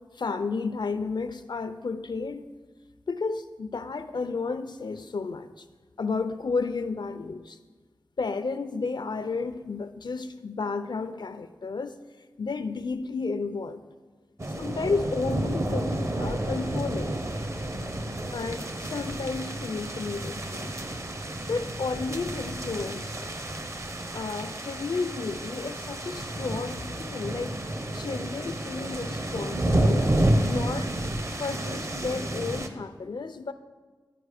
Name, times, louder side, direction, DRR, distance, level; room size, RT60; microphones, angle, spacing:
voice 1, 0.0-2.5 3.1-5.6 6.0-7.6 8.2-12.0 12.4-13.8 14.5-17.2 18.3-20.7 21.5-23.4 24.1-27.6 27.9-30.2 30.4-30.9 31.3-33.5, left 4 dB, 70° left, 11 dB, 0.4 m, -32 dB
sound 1, 14.4-32.7, right 1 dB, 40° right, 0.6 m, -30 dB
10.5 x 4.7 x 4.9 m, 1.3 s
wide cardioid pair, 65°, 8 cm